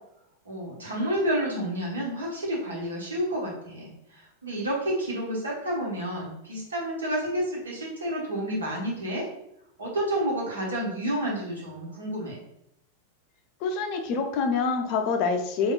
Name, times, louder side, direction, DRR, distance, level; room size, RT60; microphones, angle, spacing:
voice 1, 0.4-9.3 9.8-12.4, right 1 dB, 70° right, -3 dB, 1.0 m, -30 dB
voice 2, 13.6-15.7, left 4 dB, 45° left, 5 dB, 0.4 m, -26 dB
3.5 x 2.3 x 2.3 m, 0.77 s
figure-of-eight pair, 90°, 0 cm